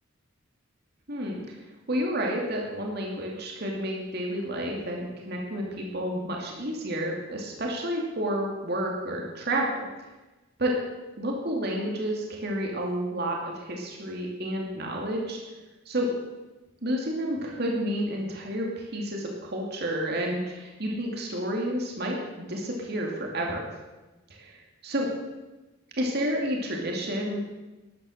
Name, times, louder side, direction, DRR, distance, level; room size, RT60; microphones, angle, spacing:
voice 1, 1.1-1.5 1.9-9.9 10.6-10.7 11.2-15.4 15.9-16.1 16.8-23.7 24.3-25.1 26.0-27.4, right 1 dB, 50° right, -1 dB, 2.5 m, -30 dB
13.0 x 10.5 x 6.5 m, 1.1 s
head